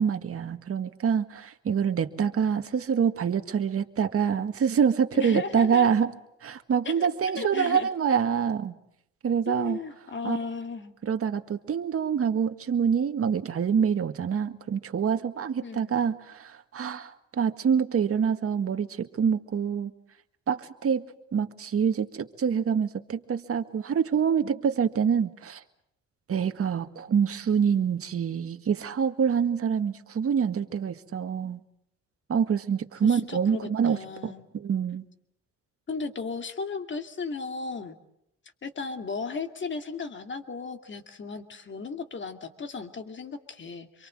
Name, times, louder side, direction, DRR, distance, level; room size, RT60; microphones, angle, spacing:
voice 1, 0.0-6.1 6.4-8.8 9.2-9.8 10.2-10.4 11.0-19.9 20.5-21.0 21.3-25.6 26.3-31.6 32.3-35.0, right 7 dB, 50° right, 7 dB, 1.8 m, -26 dB
voice 2, 5.1-5.9 6.8-7.9 9.5-11.0 15.6-16.0 33.0-34.4 35.9-38.0 38.6-44.1, left 4 dB, 40° left, 7 dB, 2.5 m, -35 dB
26.5 x 23.5 x 7.7 m, 0.76 s
cardioid pair, 90°, 30 cm